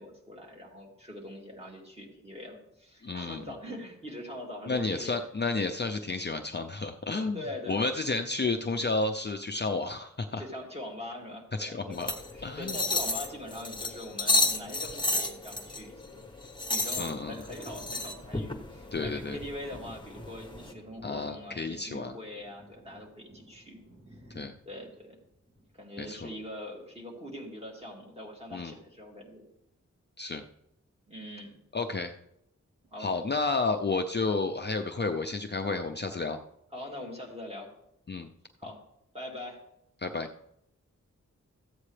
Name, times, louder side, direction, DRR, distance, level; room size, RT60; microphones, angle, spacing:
voice 1, 0.0-5.2 7.1-8.2 8.6-8.7 10.4-23.8 24.1-24.2 24.7-25.2 25.7-29.4 31.1-31.6 32.8-33.1 36.7-37.7 38.6-38.8 39.1-39.6, left 1 dB, 20° right, 0 dB, 2.5 m, -43 dB
voice 2, 3.0-3.4 4.7-10.4 11.6-12.1 12.4-12.8 17.0-17.4 18.9-19.4 21.0-22.1 24.4-24.5 26.0-26.3 28.5-28.7 30.2-30.4 31.7-32.1 33.0-36.4 38.1-38.3 40.0-40.3, left 3 dB, 35° left, 5 dB, 0.5 m, -31 dB
sound 1, 11.9-20.7, left 2 dB, 15° left, 1.0 m, -32 dB
Thunder, 15.7-16.4 16.8-26.4 27.9-28.7, equal, 45° right, 2.2 m, -51 dB
14.0 x 8.5 x 3.3 m, 0.81 s
wide cardioid pair, 95°, 30 cm